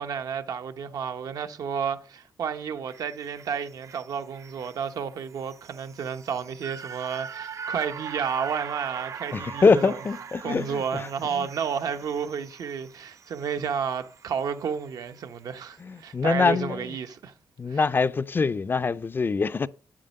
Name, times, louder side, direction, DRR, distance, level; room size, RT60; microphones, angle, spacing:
voice 1, 0.0-10.0 10.4-17.3 17.7-17.8, right 7 dB, 75° right, 0.9 m, -31 dB
sound 1, 2.9-15.2 15.6-15.7, right 6 dB, 50° right, 0.5 m, -42 dB
voice 2, 9.3-11.1 11.3-11.5 15.8-16.9 17.6-19.7, left 4 dB, 35° left, 0.4 m, -24 dB
8.5 x 7.5 x 5.3 m
cardioid pair, 100°, 6 cm